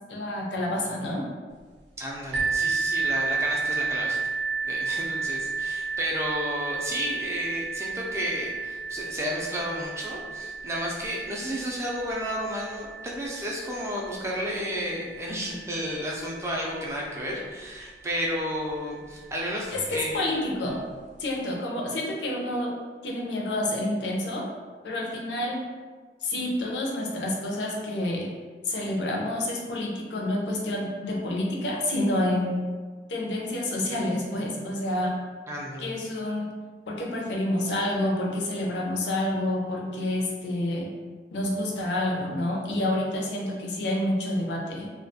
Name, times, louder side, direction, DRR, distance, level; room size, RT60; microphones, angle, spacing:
voice 1, 0.1-1.2 19.7-20.8 21.2-22.8 23.0-24.5 24.8-25.6 26.2-28.3 28.7-32.5 33.1-35.1 35.8-36.5 36.9-40.9 41.3-44.9, left 1 dB, 85° left, -1 dB, 0.5 m, -28 dB
voice 2, 2.0-4.3 4.6-20.2 35.5-35.9, equal, 15° right, -3 dB, 0.3 m, -32 dB
sound 1, 2.3-17.9 18.6-18.7 19.3-19.4, right 4 dB, 90° right, 0.5 m, -32 dB
2.3 x 2.1 x 2.7 m, 1.4 s
head